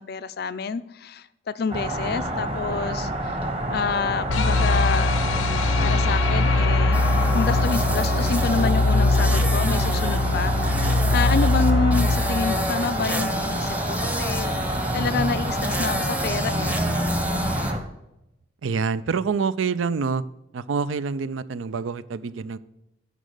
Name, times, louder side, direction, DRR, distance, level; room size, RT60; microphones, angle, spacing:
voice 1, 0.0-3.4 3.7-5.2 5.8-7.0 7.3-16.8, left 5 dB, 50° left, 14 dB, 0.4 m, -28 dB
sound 1, 1.7-17.8, right 1 dB, 30° right, 1.2 m, -28 dB
sound 2, 4.3-13.4, left 2 dB, 85° left, 0.8 m, -22 dB
sound 3, 6.9-17.7, equal, 5° right, 0.7 m, -31 dB
voice 2, 18.6-20.2 20.5-22.6, right 5 dB, 80° right, 16 dB, 0.4 m, -26 dB
10.0 x 5.2 x 6.5 m, 0.88 s
head